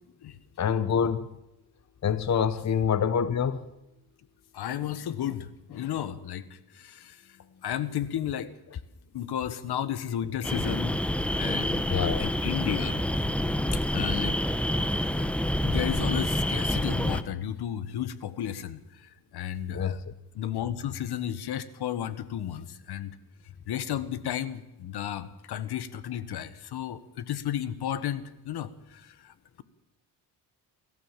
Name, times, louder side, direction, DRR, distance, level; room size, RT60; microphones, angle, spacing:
voice 1, 0.6-1.3 2.0-3.6 11.9-12.2 19.7-20.1, left 7 dB, 40° left, 1.0 m, -26 dB
voice 2, 4.5-7.2 7.6-8.5 9.1-11.0 11.4-11.8 12.2-13.0 13.7-15.3 15.6-20.0 20.3-23.1 23.7-29.6, left 10 dB, 70° left, 1.4 m, -33 dB
sound 1, 10.4-17.2, left 1 dB, 5° left, 1.1 m, -27 dB
27.5 x 14.0 x 7.4 m
cardioid pair, 90°, 40 cm